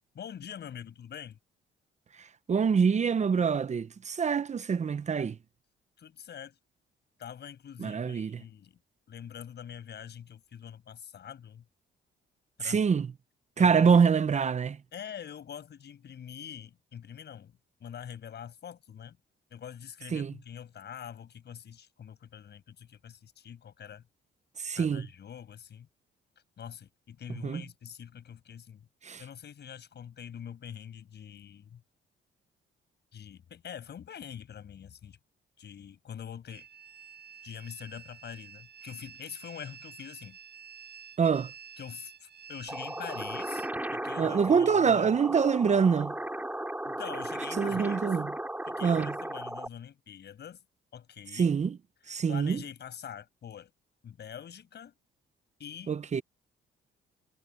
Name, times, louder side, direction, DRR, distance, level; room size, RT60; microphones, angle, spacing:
voice 1, 0.1-1.4 6.0-6.6 7.2-8.8 9.1-11.6 12.6-12.8 13.6-13.9 14.9-19.2 19.5-24.0 24.8-25.9 26.6-28.8 29.2-31.8 33.1-35.2 35.6-36.7 37.4-40.4 41.8-43.6 43.9-45.1 46.8-48.1 48.7-50.6 50.9-51.5 52.3-53.7 54.0-54.9 55.6-56.0, left 8 dB, 60° left, 6.6 m, -44 dB
voice 2, 2.2-5.4 7.8-8.4 12.6-13.1 13.6-14.8 20.1-20.3 24.6-25.1 27.4-27.6 29.0-29.2 41.2-41.5 44.2-46.1 47.6-48.3 48.8-49.1 51.3-51.8 52.1-52.6 55.9-56.2, right 6 dB, 35° right, 0.8 m, -25 dB
sound 1, 36.5-43.7, right 8 dB, 55° right, 6.8 m, -50 dB
sound 2, 42.7-49.7, right 1 dB, 10° right, 6.2 m, -36 dB
cardioid pair, 90°, 20 cm